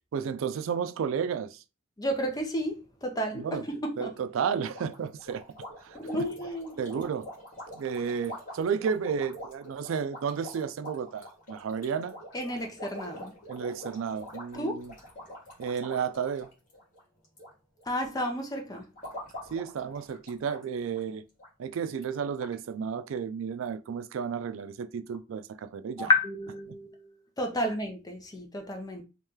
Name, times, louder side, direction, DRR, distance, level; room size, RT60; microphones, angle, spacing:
voice 1, 0.1-1.6 3.3-3.6 4.0-5.4 5.8-6.3 6.8-7.3 7.7-12.2 13.5-14.9 15.6-16.5 19.5-21.2 21.6-26.1 26.7-26.8, right 6 dB, 75° right, 0.3 m, -32 dB
voice 2, 2.0-4.1 5.9-6.8 12.3-13.3 14.5-14.9 17.9-18.8 26.0-27.1 27.4-29.0, left 1 dB, 20° left, 0.7 m, -31 dB
sound 1, 4.7-17.5 17.8-18.2 18.7-20.6 20.9-21.0 21.4-21.5 22.0-22.1 22.4-22.5, equal, 40° left, 1.6 m, -45 dB
3.1 x 2.9 x 3.6 m
head